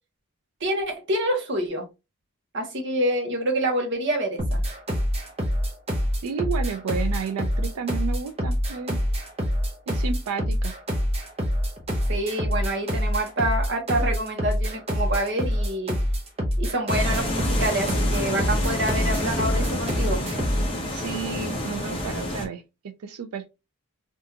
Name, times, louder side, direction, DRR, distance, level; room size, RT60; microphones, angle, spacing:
voice 1, 0.6-1.8 2.5-4.6 12.1-16.0 16.6-20.2, right 1 dB, 55° right, 1.0 m, -27 dB
sound 1, 4.4-20.7, equal, 25° right, 0.7 m, -25 dB
voice 2, 6.2-9.0 9.9-10.7 20.9-23.5, right 6 dB, 90° right, 0.4 m, -32 dB
sound 2, 16.9-22.5, left 1 dB, 25° left, 0.8 m, -29 dB
3.5 x 2.5 x 2.7 m
head